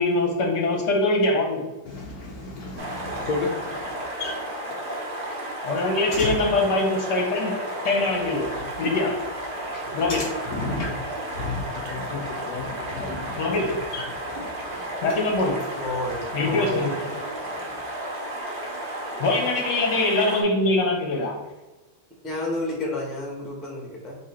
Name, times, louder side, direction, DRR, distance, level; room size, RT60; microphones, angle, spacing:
voice 1, 0.0-1.7 5.6-9.2 9.9-10.3 13.0-13.1 13.4-13.9 15.0-15.7 16.3-17.0 19.2-21.4, left 2 dB, 65° left, 1 dB, 1.1 m, -23 dB
voice 2, 1.9-4.4 6.1-6.4 8.5-8.6 9.7-14.8 17.6-17.7, left 3 dB, 85° left, -2 dB, 0.8 m, -33 dB
sound 1, 2.8-20.4, right 1 dB, 75° right, 0.4 m, -33 dB
voice 3, 15.8-17.1 22.2-24.2, left 2 dB, ahead, -3 dB, 0.5 m, -31 dB
4.3 x 2.9 x 4.2 m, 1.1 s
omnidirectional pair, 2.4 m